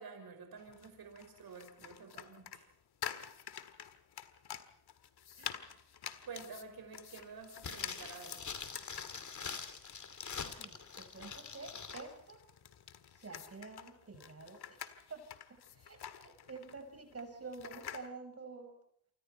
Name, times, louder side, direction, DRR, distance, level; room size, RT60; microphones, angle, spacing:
voice 1, 0.0-2.7 5.3-5.7 6.2-8.4, right 5 dB, 65° right, 4 dB, 5.6 m, -50 dB
sound 1, 0.6-18.1, left 9 dB, 75° left, 1.8 m, -49 dB
sound 2, 7.6-12.0 12.3-12.4, left 5 dB, 45° left, 2.8 m, -44 dB
voice 2, 10.3-12.4 13.2-14.8 15.1-15.2 15.7-18.7, right 4 dB, 40° right, 6 dB, 5.5 m, -49 dB
28.5 x 25.5 x 4.5 m, 0.67 s
cardioid pair, 95°, 39 cm